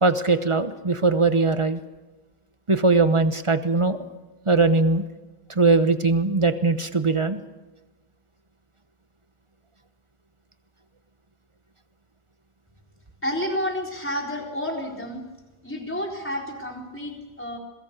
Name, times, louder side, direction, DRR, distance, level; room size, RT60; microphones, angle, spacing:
voice 1, 0.0-1.8 2.7-4.0 4.5-5.0 5.5-7.4, right 3 dB, 35° right, 10 dB, 0.5 m, -20 dB
voice 2, 13.2-15.2 15.6-17.6, left 1 dB, 5° left, 0 dB, 4.0 m, -30 dB
27.0 x 22.5 x 6.8 m, 1.1 s
omnidirectional pair, 2.1 m